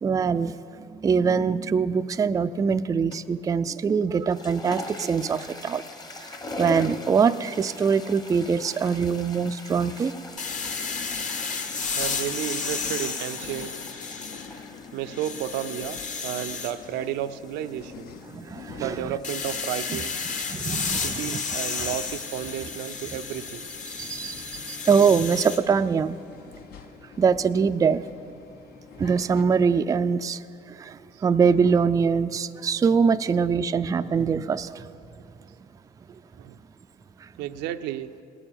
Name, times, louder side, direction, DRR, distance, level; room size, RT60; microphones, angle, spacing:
voice 1, 0.0-5.8 6.6-10.1 10.8-10.9 11.2-11.3 18.3-19.0 20.5-21.4 21.8-21.9 23.9-26.1 27.2-28.0 29.0-30.4 30.7-34.8, right 6 dB, 20° right, 11 dB, 0.3 m, -23 dB
sound 1, 3.1-3.4 4.1-19.9, left 2 dB, 25° left, 1.0 m, -42 dB
sound 2, 10.4-29.4, left 6 dB, 65° left, 0.8 m, -46 dB
sound 3, 10.4-14.7 15.1-16.7 19.2-25.6, left 5 dB, 45° left, 1.2 m, -32 dB
voice 2, 12.0-13.7 14.9-18.1 18.8-20.2 21.0-23.6 31.1-31.2 36.3-36.6 37.4-38.1, right 11 dB, 85° right, 9 dB, 0.6 m, -32 dB
18.0 x 6.9 x 8.8 m, 2.5 s
cardioid pair, 110°, 17 cm